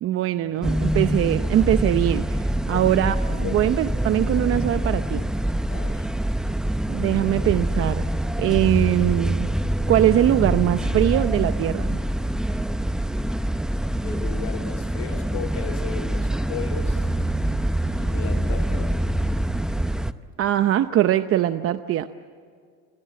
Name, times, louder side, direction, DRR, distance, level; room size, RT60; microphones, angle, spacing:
voice 1, 0.0-5.2 6.9-8.0 8.4-9.5 9.9-12.0 20.4-22.1, right 12 dB, 45° right, 10 dB, 0.8 m, -22 dB
sound 1, 0.6-20.1, right 1 dB, ahead, 0.7 m, -25 dB
voice 2, 5.7-6.1 14.0-17.0 17.9-18.9, left 9 dB, 65° left, 4 dB, 3.2 m, -35 dB
29.0 x 23.5 x 8.5 m, 2.1 s
cardioid pair, 130°, 30 cm